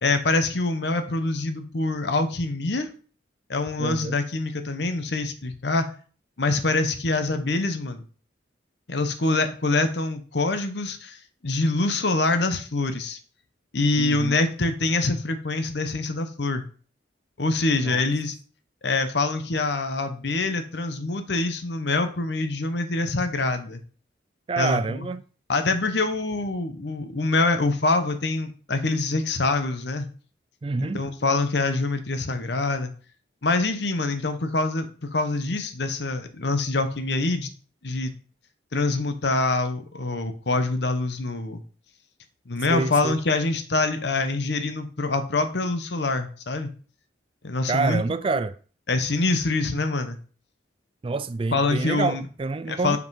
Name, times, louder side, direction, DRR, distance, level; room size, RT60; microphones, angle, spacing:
voice 1, 0.0-2.9 3.5-5.9 6.4-8.0 8.9-11.2 11.4-13.2 13.7-16.6 17.4-18.3 18.8-23.8 24.6-25.1 25.5-30.1 30.8-32.9 33.4-37.5 37.8-38.1 38.7-41.6 42.5-46.7 47.4-48.0 48.9-50.2 51.5-52.2 52.7-53.0, left 3 dB, 65° left, 0.9 m, -25 dB
voice 2, 3.8-4.2 14.0-14.4 17.8-18.0 24.5-25.2 30.6-31.0 42.7-43.1 47.7-48.5 51.0-53.0, right 3 dB, 30° right, 0.3 m, -27 dB
5.4 x 5.0 x 4.7 m
head